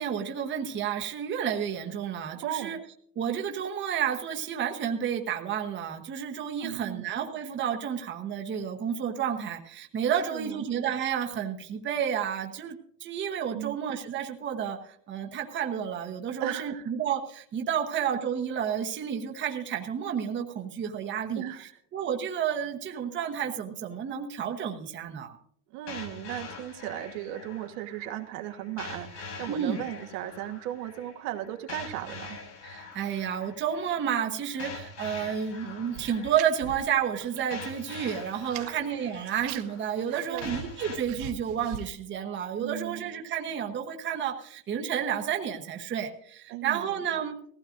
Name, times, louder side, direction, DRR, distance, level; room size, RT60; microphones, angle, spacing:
voice 1, 0.0-2.8 3.2-21.4 21.9-25.3 29.5-29.8 32.6-47.4, right 8 dB, 25° right, 2 dB, 1.0 m, -31 dB
voice 2, 2.4-2.7 6.6-7.1 10.3-10.7 13.5-13.8 16.4-16.9 21.3-21.8 25.7-32.4 38.6-38.9 40.1-40.6 42.6-43.1 46.5-47.0, right 13 dB, 75° right, 5 dB, 1.4 m, -36 dB
sound 1, 25.9-41.0, left 4 dB, 85° left, 5.4 m, -44 dB
sound 2, 35.9-37.5 37.8-38.8 39.1-41.9, right 9 dB, 50° right, 1.1 m, -42 dB
19.0 x 15.5 x 2.6 m, 0.63 s
cardioid pair, 150°, 46 cm